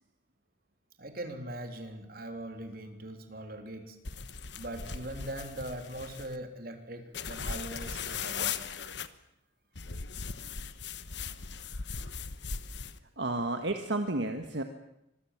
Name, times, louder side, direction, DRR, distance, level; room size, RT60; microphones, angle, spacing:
voice 1, 1.0-4.0 4.5-8.6, right 1 dB, 50° right, 5 dB, 3.3 m, -41 dB
sound 1, 4.0-6.4 7.1-9.1 9.8-13.0, left 6 dB, 70° left, 1.2 m, -38 dB
voice 2, 13.2-14.6, right 2 dB, 70° right, 6 dB, 1.5 m, -31 dB
25.5 x 21.0 x 7.4 m, 0.83 s
head